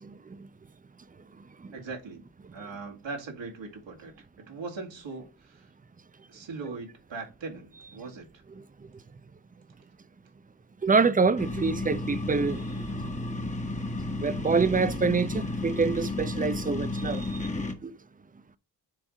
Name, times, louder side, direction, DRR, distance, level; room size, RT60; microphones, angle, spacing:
voice 1, 0.0-0.5 1.6-1.7 10.8-13.1 14.2-17.5 17.8-17.9, right 4 dB, 15° right, 0.6 m, -26 dB
voice 2, 1.7-2.2 2.5-5.7 6.3-8.4, right 4 dB, 65° right, 2.2 m, -40 dB
sound 1, 11.4-17.7, left 2 dB, 15° left, 1.5 m, -32 dB
7.4 x 3.5 x 5.0 m
supercardioid pair, 40°, 48 cm